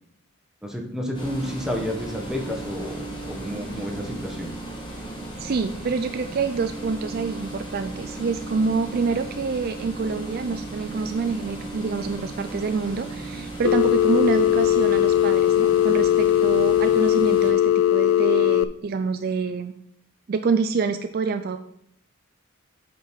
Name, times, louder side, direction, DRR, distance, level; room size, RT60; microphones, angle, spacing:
voice 1, 0.6-4.5, left 1 dB, 5° right, 0 dB, 1.2 m, -30 dB
sound 1, 1.1-17.5, right 2 dB, 20° left, 1.7 m, -36 dB
voice 2, 5.4-19.7 20.3-21.6, right 4 dB, 45° right, 8 dB, 0.4 m, -27 dB
Telephone, 13.6-18.6, left 11 dB, 65° left, 0.3 m, -19 dB
7.9 x 5.3 x 4.4 m, 0.71 s
head